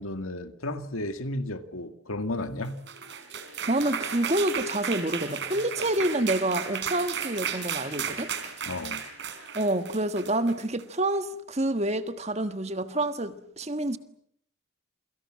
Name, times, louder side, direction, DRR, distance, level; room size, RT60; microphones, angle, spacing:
voice 1, 0.0-2.8 8.7-9.0, left 1 dB, 85° left, 2.0 m, -33 dB
sound 1, 2.7-10.9, right 7 dB, 55° right, 4.0 m, -34 dB
voice 2, 3.7-8.3 9.5-14.0, right 1 dB, 30° right, 1.5 m, -28 dB
28.5 x 23.5 x 7.5 m
head